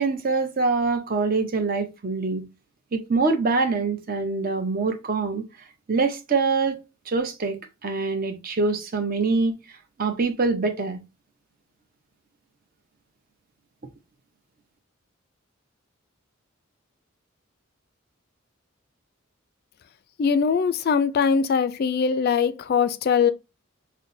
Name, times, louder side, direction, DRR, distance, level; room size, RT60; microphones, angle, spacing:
voice 1, 0.0-2.4 2.9-5.4 5.9-6.8 7.1-9.5 10.0-11.0, right 4 dB, 45° right, 0.7 m, -24 dB
voice 2, 20.2-23.3, left 6 dB, 50° left, 0.3 m, -21 dB
5.8 x 2.1 x 2.6 m
head